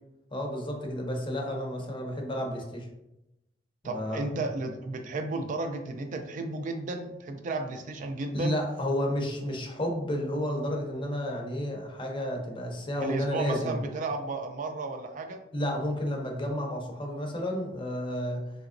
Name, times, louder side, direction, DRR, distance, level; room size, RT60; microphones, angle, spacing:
voice 1, 0.3-2.9 3.8-4.4 8.3-13.8 15.5-18.5, equal, 25° left, 1 dB, 0.6 m, -31 dB
voice 2, 3.8-8.6 13.0-15.4, right 2 dB, 45° right, 6 dB, 0.3 m, -33 dB
3.4 x 2.8 x 2.5 m, 0.89 s
head